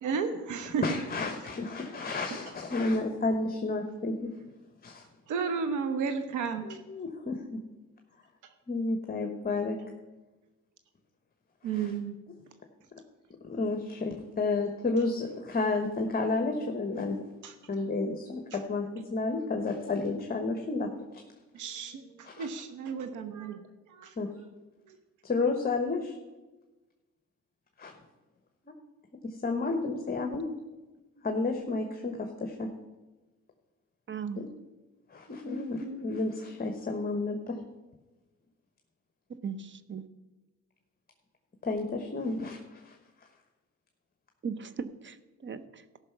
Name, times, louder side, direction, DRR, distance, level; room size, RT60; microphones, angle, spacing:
voice 1, 0.0-1.0 2.3-2.4 5.3-6.8 11.6-12.1 17.4-17.5 18.5-18.6 21.5-24.1 24.9-25.0, right 5 dB, 80° right, 8 dB, 1.0 m, -33 dB
voice 2, 0.8-4.3 4.8-5.0 6.6-7.6 8.7-9.8 11.7-11.9 13.4-17.2 17.7-20.9 22.2-22.5 24.2-24.3 25.2-26.2 27.8-27.9 29.2-30.5 31.2-32.7 34.4-34.5 35.1-37.6 41.6-43.0, left 3 dB, 30° left, 4 dB, 1.2 m, -31 dB
voice 3, 34.1-34.4 39.4-40.0 44.4-45.2 45.4-45.8, right 6 dB, 40° right, 12 dB, 0.7 m, -37 dB
14.0 x 5.8 x 5.9 m, 1.2 s
cardioid pair, 90°, 30 cm